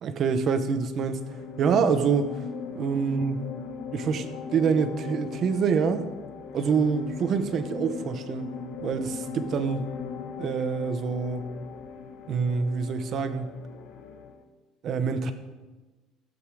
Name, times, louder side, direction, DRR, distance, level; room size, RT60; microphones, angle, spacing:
voice 1, 0.0-1.2 1.6-2.4 2.7-3.5 3.9-4.3 4.5-6.1 6.5-9.9 10.4-11.5 12.3-13.6 14.8-15.3, right 5 dB, 35° right, 10 dB, 0.9 m, -26 dB
sound 1, 1.1-14.4, left 5 dB, 60° left, 1.3 m, -39 dB
15.5 x 8.0 x 4.8 m, 1.2 s
cardioid pair, 170°, 0 cm